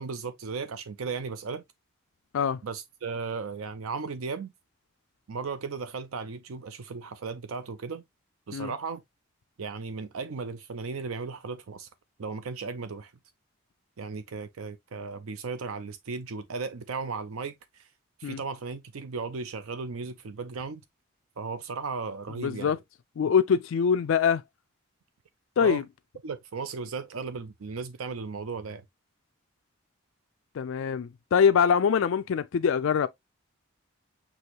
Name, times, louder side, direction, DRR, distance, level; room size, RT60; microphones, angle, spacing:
voice 1, 0.0-1.6 2.6-4.5 5.3-8.0 8.5-9.0 9.6-11.9 12.2-13.1 14.0-17.9 18.2-20.8 21.4-22.8 25.6-25.8 26.2-28.8, right 4 dB, 80° right, 0.5 m, -36 dB
voice 2, 22.4-22.8 23.2-24.4 25.6-25.8 30.5-33.1, left 7 dB, 70° left, 0.3 m, -24 dB
6.2 x 2.9 x 2.9 m
head